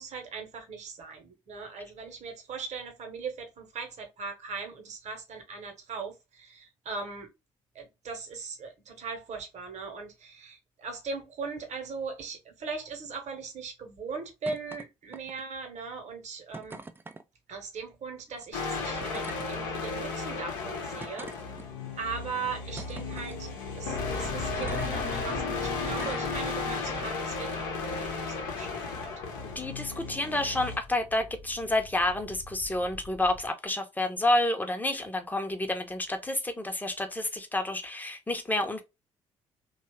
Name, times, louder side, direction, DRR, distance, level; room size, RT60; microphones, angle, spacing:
voice 1, 0.0-7.3 7.7-16.8 17.5-21.3 22.0-29.1, right 4 dB, 45° right, 1.1 m, -39 dB
sound 1, 14.5-14.9 15.1-15.6 16.5-17.2 18.3-18.4 19.0-19.5 20.2-20.3 21.0-21.9 22.8-23.4 24.6-24.9 25.9-26.3 27.4-27.6, right 3 dB, 15° right, 0.4 m, -44 dB
sound 2, 18.5-30.8, left 4 dB, 70° left, 0.8 m, -34 dB
sound 3, 24.0-33.5, left 2 dB, 40° left, 1.0 m, -42 dB
voice 2, 29.6-38.8, left 1 dB, 10° left, 0.8 m, -29 dB
3.0 x 2.4 x 3.0 m
figure-of-eight pair, 45°, 16 cm